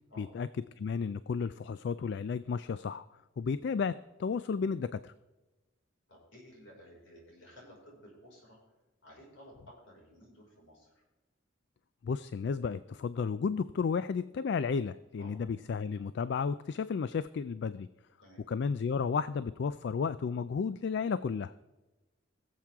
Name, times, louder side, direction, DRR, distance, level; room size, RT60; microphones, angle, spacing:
voice 1, 0.2-0.5 0.8-3.1 3.4-3.9 4.2-5.1 12.0-17.9 18.5-21.5, left 5 dB, 60° left, 14 dB, 0.3 m, -33 dB
voice 2, 6.1-8.6 9.0-11.0 15.2-15.3 18.2-18.4, equal, 75° left, -2 dB, 5.1 m, -55 dB
20.5 x 7.5 x 3.6 m, 1.1 s
head